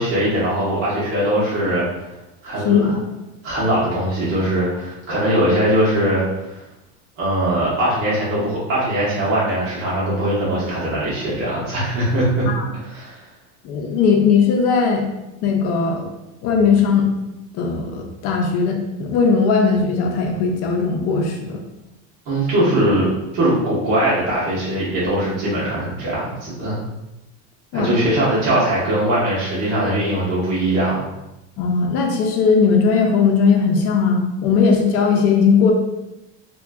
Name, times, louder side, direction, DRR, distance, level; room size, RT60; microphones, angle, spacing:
voice 1, 0.0-1.9 2.4-2.9 3.4-6.6 7.2-12.4 12.7-13.3 22.2-23.1 23.3-26.8 27.7-31.1, right 1 dB, 70° right, -8 dB, 1.2 m, -21 dB
voice 2, 2.6-3.0 12.5-12.6 13.6-15.0 15.4-16.1 16.4-17.1 17.5-21.6 27.7-27.9 31.6-35.7, left 5 dB, 50° left, 2 dB, 0.5 m, -18 dB
2.9 x 2.5 x 2.3 m, 0.97 s
supercardioid pair, 130°, 31 cm